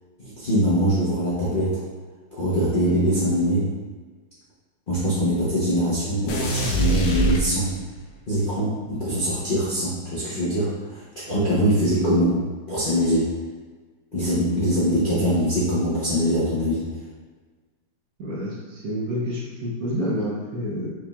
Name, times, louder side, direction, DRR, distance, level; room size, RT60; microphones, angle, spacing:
voice 1, 0.2-1.8 2.4-3.7 4.9-7.8 8.3-12.4 12.7-13.3 14.1-16.9, equal, 45° left, -10 dB, 0.6 m, -23 dB
sound 1, 6.3-8.1, right 1 dB, 80° left, 1.3 m, -24 dB
voice 2, 18.2-20.9, equal, 60° right, -5 dB, 1.1 m, -28 dB
4.7 x 3.5 x 2.3 m, 1.4 s
omnidirectional pair, 2.0 m